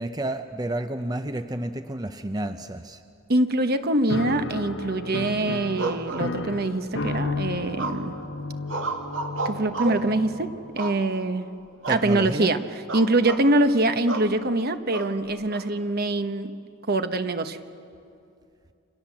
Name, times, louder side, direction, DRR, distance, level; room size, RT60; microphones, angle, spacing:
voice 1, 0.0-3.0 11.9-12.5, right 1 dB, 20° right, 8 dB, 0.7 m, -30 dB
voice 2, 3.3-8.2 9.4-11.5 11.9-16.6 16.9-17.6, right 2 dB, 50° right, 9 dB, 1.1 m, -24 dB
Piano, 4.1-10.9, left 2 dB, 70° left, 1.3 m, -33 dB
sound 1, 5.8-6.8 7.8-8.2 8.7-10.1 10.8-11.4 11.8-12.1 12.4-12.5 12.9-13.5 14.1-14.3 14.9-15.6, right 3 dB, 80° right, 2.2 m, -32 dB
29.0 x 26.5 x 7.3 m, 2.5 s
head